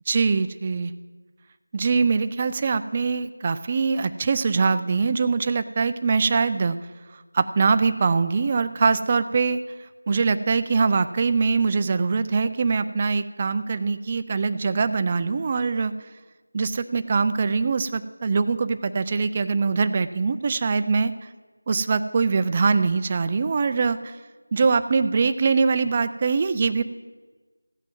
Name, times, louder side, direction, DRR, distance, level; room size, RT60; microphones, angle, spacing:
voice 1, 0.1-0.9 1.7-6.8 7.3-9.6 10.1-15.9 16.5-21.1 21.7-24.2 24.5-26.8, right 4 dB, 20° right, 11 dB, 0.3 m, -23 dB
15.5 x 6.1 x 7.4 m, 1.3 s
figure-of-eight pair, 175°, 0 cm